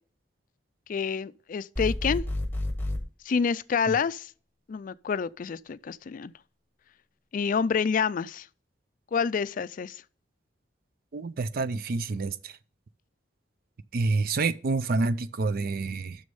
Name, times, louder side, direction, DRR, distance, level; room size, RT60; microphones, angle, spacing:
voice 1, 0.9-2.2 3.3-4.3 4.7-6.3 7.3-8.5 9.1-10.0, left 6 dB, 45° left, 0.4 m, -28 dB
sound 1, 1.8-3.0, left 1 dB, 10° left, 1.1 m, -30 dB
voice 2, 11.1-12.5 13.9-16.2, right 3 dB, 55° right, 0.5 m, -28 dB
6.4 x 6.3 x 5.3 m
head